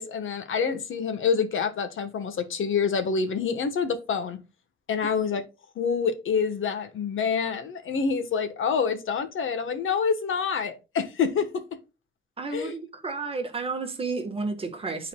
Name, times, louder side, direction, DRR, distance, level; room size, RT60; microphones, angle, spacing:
voice 1, 0.0-4.4 4.9-5.4 5.8-11.6 12.5-12.7, left 6 dB, 80° left, 1.2 m, -27 dB
voice 2, 12.4-15.1, right 4 dB, 30° right, 1.2 m, -31 dB
11.0 x 4.1 x 2.2 m
wide cardioid pair, 175°, 20 cm